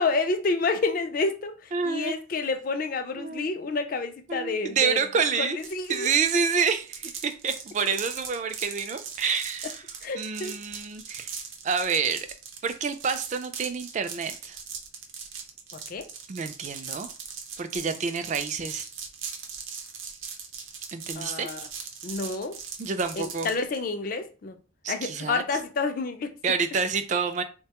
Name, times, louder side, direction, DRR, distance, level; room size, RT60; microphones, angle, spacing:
voice 1, 0.0-5.0 5.4-6.1 10.0-10.5 15.7-16.0 21.2-21.6 22.0-22.6 23.4-24.6 24.9-26.3, left 3 dB, 45° left, 0.4 m, -29 dB
voice 2, 1.7-2.1 3.2-3.5 4.3-5.6 5.9-9.8 10.1-11.3 11.6-12.3 12.6-14.6 16.3-17.1 17.6-18.9 20.9-21.5 22.8-23.5 24.8-25.4 26.4-27.4, right 5 dB, 35° right, 0.3 m, -28 dB
sound 1, 5.6-23.8, right 6 dB, 80° right, 0.7 m, -39 dB
3.9 x 2.2 x 2.8 m
head